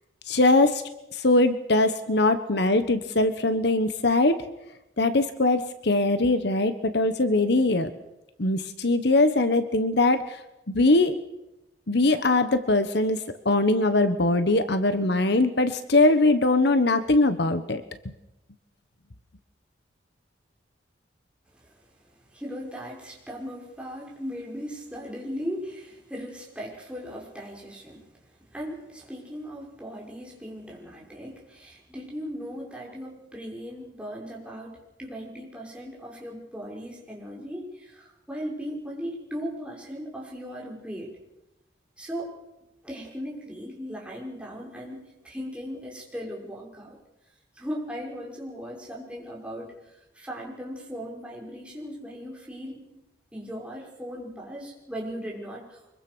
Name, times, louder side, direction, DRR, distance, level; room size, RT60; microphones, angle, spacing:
voice 1, 0.3-0.8 1.1-4.4 5.0-7.9 8.4-10.4 10.7-11.1 11.9-18.1, left 2 dB, 60° left, 10 dB, 1.3 m, -22 dB
voice 2, 22.1-28.0 28.5-41.1 42.0-42.3 42.8-47.0 47.5-52.9 53.3-55.8, equal, 5° right, -3 dB, 6.1 m, -38 dB
25.0 x 22.5 x 6.3 m, 0.93 s
head